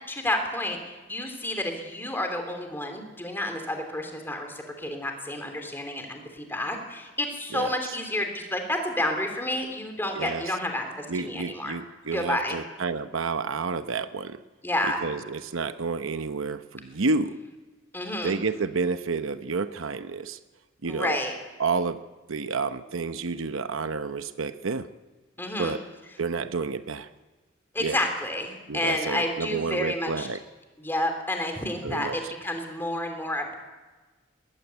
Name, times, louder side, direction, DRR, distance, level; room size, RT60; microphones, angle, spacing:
voice 1, 0.1-11.8 12.1-12.6 14.6-15.0 17.9-18.4 20.9-21.3 25.4-25.8 27.7-30.3 30.8-33.5, left 1 dB, 10° left, 4 dB, 3.3 m, -30 dB
voice 2, 7.5-7.9 10.1-10.4 11.1-14.4 15.0-17.4 18.2-20.4 20.8-21.2 21.6-22.0 22.3-24.9 25.6-25.8 26.2-27.1 27.8-28.0 28.7-30.4 31.8-32.2, right 4 dB, 90° right, 11 dB, 0.8 m, -30 dB
20.0 x 15.0 x 9.4 m, 1.3 s
head